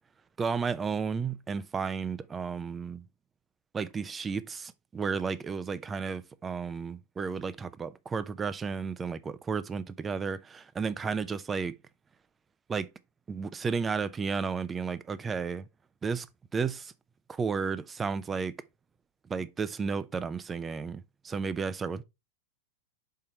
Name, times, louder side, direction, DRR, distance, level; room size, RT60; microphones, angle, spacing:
voice 1, 0.4-3.0 3.7-11.8 12.7-12.9 13.3-15.6 16.0-16.3 16.5-16.9 17.3-18.5 19.3-22.0, right 5 dB, 20° right, 0.5 m, -33 dB
5.6 x 4.3 x 4.6 m
figure-of-eight pair, 90°, 0 cm